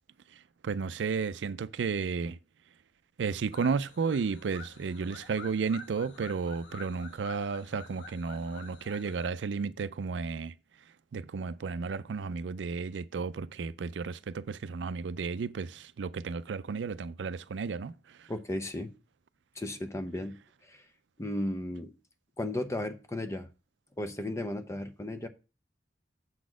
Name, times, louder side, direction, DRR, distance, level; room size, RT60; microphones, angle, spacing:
voice 1, 0.3-2.4 3.2-18.3, right 5 dB, 85° right, 0.4 m, -33 dB
sound 1, 3.5-9.3, left 3 dB, 85° left, 1.0 m, -49 dB
voice 2, 18.3-18.9 19.6-20.4 21.2-21.9 22.4-23.5 24.0-25.3, left 1 dB, 15° left, 0.7 m, -34 dB
7.7 x 4.1 x 6.1 m
head